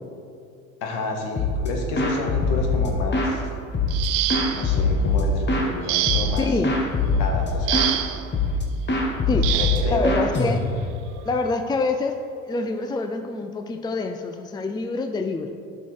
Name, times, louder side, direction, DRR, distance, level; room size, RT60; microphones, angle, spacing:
voice 1, 0.8-3.4 4.5-6.6 7.2-7.9 9.5-10.4, left 2 dB, 65° left, 1 dB, 1.8 m, -30 dB
sound 1, 1.4-1.7 2.0-3.4 3.7-5.7 6.1-6.4 6.6-8.0 8.3-8.6 8.9-11.0, left 3 dB, 25° left, 1.7 m, -23 dB
sound 2, 3.9-4.8 5.9-6.5 7.7-8.3 9.4-9.9 11.1-11.2 11.8-12.0, right 13 dB, 50° right, 0.7 m, -26 dB
voice 2, 6.4-6.7 9.3-9.5 9.9-10.6 11.2-12.1 12.4-15.5, left 3 dB, 10° left, 6 dB, 0.5 m, -26 dB
11.5 x 5.9 x 4.7 m, 2.4 s
hypercardioid pair, 70°, 40 cm